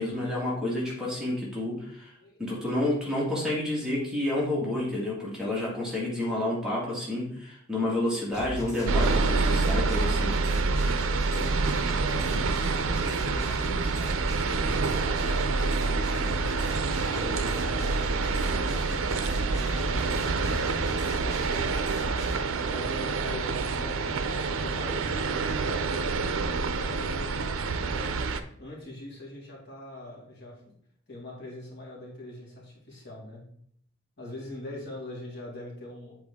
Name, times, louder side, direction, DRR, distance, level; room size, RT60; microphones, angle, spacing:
voice 1, 0.0-2.1 2.4-10.4, left 1 dB, 5° right, -6 dB, 1.8 m, -29 dB
sound 1, 8.3-22.4, equal, 15° left, 1.5 m, -38 dB
sound 2, 8.9-28.4, right 4 dB, 75° right, 0.6 m, -27 dB
voice 2, 11.3-12.5 12.8-16.3 17.1-22.3 22.7-30.6 31.1-33.4 34.2-36.2, left 1 dB, 55° left, -4 dB, 2.3 m, -42 dB
8.1 x 4.4 x 3.6 m, 0.67 s
head